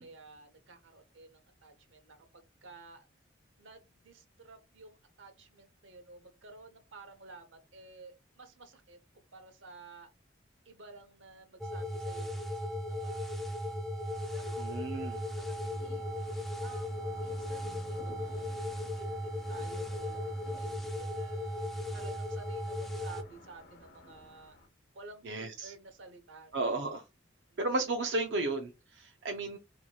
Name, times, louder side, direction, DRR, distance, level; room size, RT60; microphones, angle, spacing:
voice 1, 0.0-3.1 3.6-10.1 10.6-13.8 14.3-14.7 15.4-16.1 16.6-24.6 24.9-26.7 27.5-27.6, right 3 dB, 90° right, 0.9 m, -53 dB
sound 1, 11.6-23.2, left 1 dB, ahead, 0.4 m, -37 dB
sound 2, 14.1-24.7, left 2 dB, 55° left, 0.9 m, -55 dB
voice 2, 14.6-15.2 25.2-25.7 26.5-27.0 27.6-29.6, right 2 dB, 65° right, 0.5 m, -33 dB
4.3 x 2.8 x 2.3 m
head